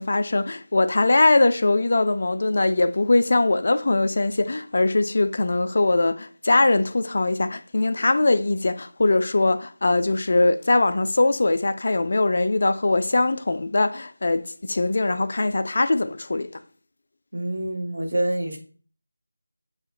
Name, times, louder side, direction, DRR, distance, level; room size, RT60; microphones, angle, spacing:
voice 1, 0.0-16.5, left 2 dB, 50° left, 0.3 m, -21 dB
voice 2, 17.3-18.6, right 1 dB, 80° right, 1.4 m, -26 dB
7.3 x 2.8 x 2.4 m
figure-of-eight pair, 170°, 0 cm